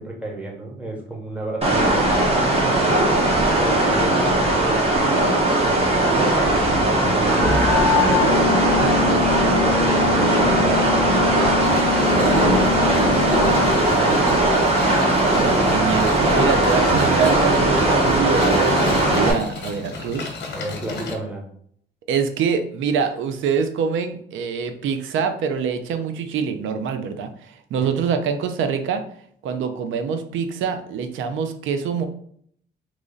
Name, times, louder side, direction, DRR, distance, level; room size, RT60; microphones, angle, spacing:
voice 1, 0.0-2.9 3.6-4.9 5.5-8.3 8.9-11.5 12.1-14.2 20.5-21.5 27.8-27.9, right 2 dB, 5° right, -1 dB, 1.1 m, -32 dB
sound 1, 1.6-19.3, right 2 dB, 30° right, 1.2 m, -18 dB
sound 2, 7.4-13.7, left 9 dB, 10° left, 0.8 m, -25 dB
sound 3, 11.6-21.1, left 4 dB, 65° left, 0.9 m, -35 dB
voice 2, 14.8-20.2 22.1-29.0 29.4-32.1, right 6 dB, 80° right, 7 dB, 0.5 m, -25 dB
3.1 x 2.4 x 3.9 m, 0.63 s
cardioid pair, 90°, 20 cm